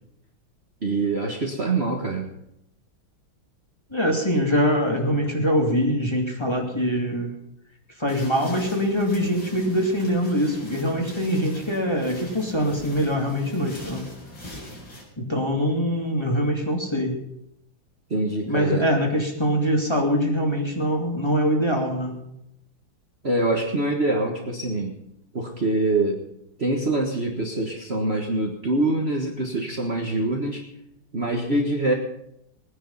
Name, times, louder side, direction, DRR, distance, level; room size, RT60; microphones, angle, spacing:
voice 1, 0.8-2.3 18.1-18.8 23.2-25.0 25.3-26.2 26.6-30.6 31.1-31.9, right 2 dB, 35° right, 0 dB, 1.6 m, -24 dB
voice 2, 3.9-7.3 8.0-14.0 15.2-17.2 18.4-22.2, equal, 15° left, -1 dB, 2.4 m, -23 dB
sound 1, 8.1-15.0, equal, 70° left, 5.3 m, -42 dB
20.0 x 10.0 x 5.5 m, 0.79 s
omnidirectional pair, 2.2 m